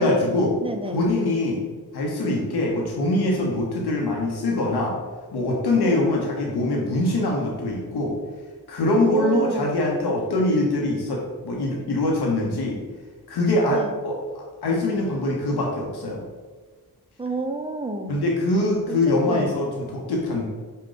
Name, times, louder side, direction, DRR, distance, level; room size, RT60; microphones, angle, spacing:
voice 1, 0.0-0.6 0.9-1.6 1.9-5.0 5.3-8.2 8.7-12.8 13.3-16.2 18.1-20.5, left 2 dB, 80° left, -1 dB, 0.9 m, -23 dB
voice 2, 0.6-1.0 5.8-6.1 9.0-9.7 13.7-13.9 17.2-18.2 18.9-19.6, right 2 dB, 15° right, 5 dB, 0.5 m, -30 dB
5.1 x 2.2 x 3.8 m, 1.4 s
cardioid pair, 45°, 39 cm